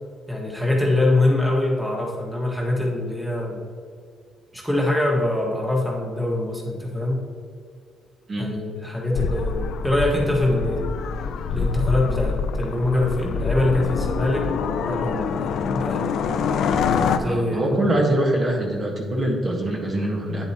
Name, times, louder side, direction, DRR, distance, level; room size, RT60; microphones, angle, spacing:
voice 1, 0.3-3.7 4.5-7.2 8.4-10.8 11.5-16.0 17.2-17.9, left 1 dB, ahead, -2 dB, 1.6 m, -24 dB
sound 1, 9.1-17.2, left 5 dB, 70° left, 0.5 m, -25 dB
voice 2, 17.2-20.5, right 1 dB, 40° right, -1 dB, 1.5 m, -23 dB
9.2 x 7.8 x 3.0 m, 2.2 s
cardioid pair, 95°, 0 cm